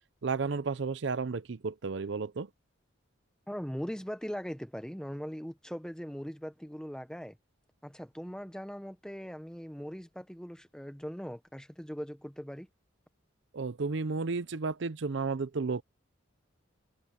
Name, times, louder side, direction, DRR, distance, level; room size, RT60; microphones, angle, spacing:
voice 1, 0.2-2.5 13.5-15.8, right 4 dB, 65° right, 0.6 m, -32 dB
voice 2, 3.5-7.4 7.8-12.7, equal, 5° left, 1.0 m, -40 dB
head